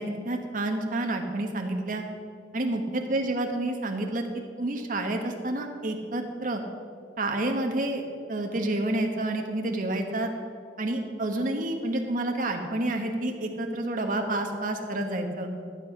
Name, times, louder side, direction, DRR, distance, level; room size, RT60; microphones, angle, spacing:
voice 1, 0.0-2.0 2.5-4.3 4.6-6.6 7.2-8.0 8.3-10.3 10.8-15.5, right 1 dB, 45° right, 3 dB, 1.2 m, -29 dB
12.5 x 7.7 x 5.7 m, 2.2 s
head